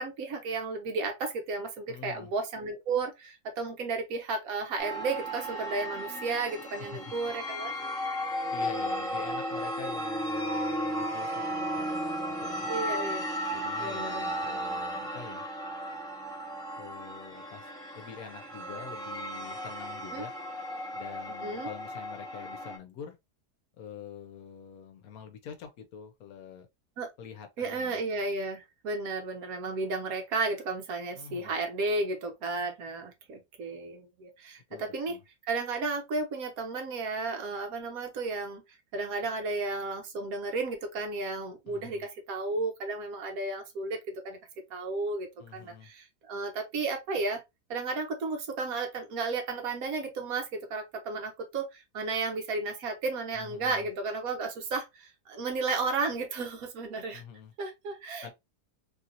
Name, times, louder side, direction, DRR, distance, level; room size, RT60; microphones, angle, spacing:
voice 1, 0.0-7.7 12.7-13.3 13.8-14.6 20.1-20.2 21.4-21.7 27.0-27.1 27.6-35.2 35.4-38.6 38.9-44.4 44.7-47.4 47.7-57.2 57.6-58.3, right 3 dB, 70° right, 1.1 m, -33 dB
voice 2, 1.9-2.3 6.9-7.0 8.5-12.7 13.5-15.5 16.8-17.7 18.0-20.3 20.9-23.2 23.8-26.7 27.2-28.0 31.1-31.5 34.7-35.2 41.7-42.1 45.4-45.9 53.3-53.9 57.1-57.5 58.2-58.3, left 7 dB, 70° left, 1.0 m, -46 dB
sound 1, 4.8-22.8, equal, 5° left, 0.8 m, -35 dB
3.0 x 2.7 x 2.5 m
omnidirectional pair, 1.7 m